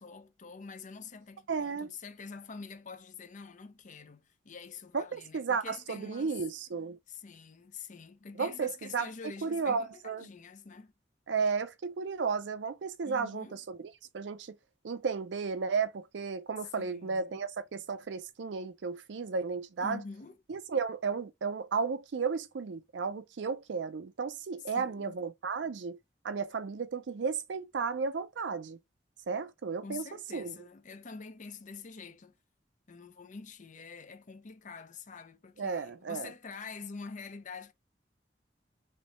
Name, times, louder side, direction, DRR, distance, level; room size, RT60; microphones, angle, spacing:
voice 1, 0.0-6.4 7.1-10.9 13.0-13.6 16.8-17.4 19.8-20.4 24.7-25.2 29.8-32.3 32.9-37.7, left 5 dB, 45° left, 0.6 m, -46 dB
voice 2, 1.5-1.9 4.9-7.0 8.4-9.1 9.4-10.3 11.3-13.8 14.1-14.5 14.8-20.0 20.5-26.0 26.2-28.8 29.3-30.0 30.3-30.6 35.6-36.3, right 5 dB, 75° right, 0.5 m, -33 dB
3.2 x 3.1 x 4.0 m
head